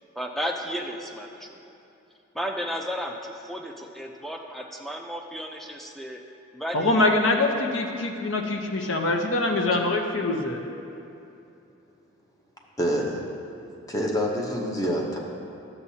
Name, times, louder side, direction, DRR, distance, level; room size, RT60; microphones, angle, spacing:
voice 1, 0.2-1.6 2.3-6.2 6.5-7.0, equal, ahead, 1 dB, 0.4 m, -33 dB
voice 2, 6.7-10.6, left 2 dB, 65° left, 3 dB, 0.7 m, -24 dB
voice 3, 12.8-13.2 13.9-15.2, equal, 15° left, -2 dB, 0.8 m, -26 dB
11.0 x 7.0 x 2.8 m, 2.8 s
head